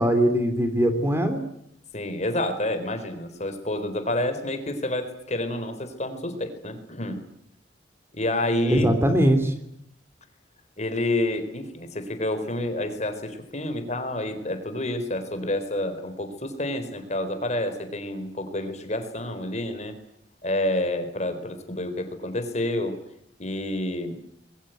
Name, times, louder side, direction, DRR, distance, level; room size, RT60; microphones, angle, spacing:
voice 1, 0.0-1.4 8.7-9.5, equal, 15° right, 7 dB, 3.1 m, -21 dB
voice 2, 1.9-7.2 8.1-8.9 10.8-19.9 20.4-22.9 23.4-24.2, left 1 dB, 40° left, 9 dB, 4.1 m, -29 dB
26.0 x 22.5 x 9.3 m, 0.71 s
head